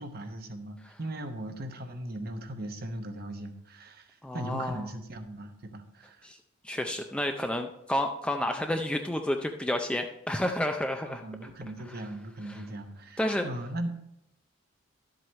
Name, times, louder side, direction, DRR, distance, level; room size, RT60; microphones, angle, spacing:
voice 1, 0.0-6.3 11.1-14.0, right 1 dB, 45° right, 6 dB, 0.9 m, -38 dB
voice 2, 4.2-4.8 6.2-6.4 6.6-11.2 12.5-12.6 13.2-13.5, left 1 dB, 5° left, 4 dB, 0.4 m, -30 dB
12.0 x 7.7 x 3.1 m, 0.85 s
head